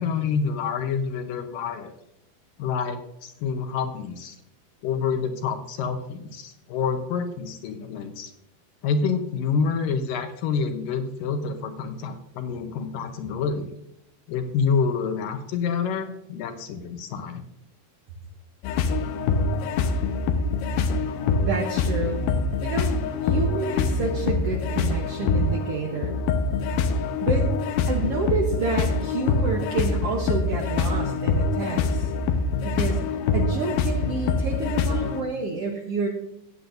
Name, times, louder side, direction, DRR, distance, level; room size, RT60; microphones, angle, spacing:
voice 1, 0.0-1.9 2.6-4.4 4.8-8.3 8.8-13.7 14.3-17.5, left 5 dB, 75° left, 7 dB, 2.3 m, -27 dB
sound 1, 18.6-35.2, left 4 dB, 90° left, 2.7 m, -25 dB
voice 2, 21.4-22.2 22.6-22.9 23.2-26.1 27.2-27.5 27.9-32.1 32.6-33.0 33.3-36.1, right 4 dB, 90° right, 0 dB, 1.3 m, -29 dB
15.0 x 9.5 x 2.6 m, 0.80 s
omnidirectional pair, 4.3 m